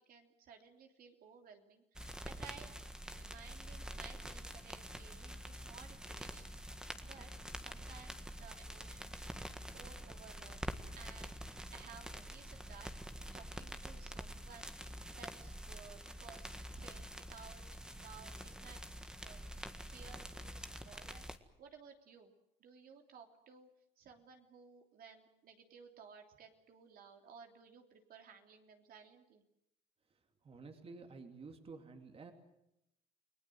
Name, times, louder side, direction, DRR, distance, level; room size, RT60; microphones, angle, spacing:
voice 1, 0.1-2.7 3.1-6.6 7.0-12.9 13.3-14.7 15.1-17.6 17.9-21.2 21.6-22.3 22.6-23.7 24.0-29.4, right 6 dB, 60° right, 3 dB, 3.2 m, -57 dB
sound 1, 2.0-21.4, equal, 5° right, 1.7 m, -47 dB
voice 2, 30.4-32.3, right 4 dB, 35° right, 5 dB, 2.7 m, -51 dB
29.5 x 19.5 x 7.8 m, 0.83 s
cardioid pair, 110°, 17 cm